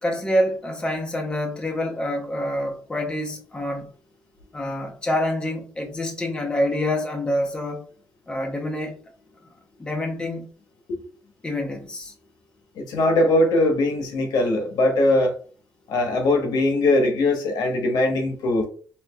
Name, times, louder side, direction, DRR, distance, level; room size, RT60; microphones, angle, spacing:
voice 1, 0.0-3.9 4.5-7.8 8.3-9.0 9.8-10.5 11.4-12.1, left 1 dB, 15° left, 0.7 m, -26 dB
voice 2, 12.8-15.3 15.9-18.7, left 2 dB, 80° left, 1.0 m, -21 dB
4.5 x 2.9 x 2.3 m
cardioid pair, 150°, 7 cm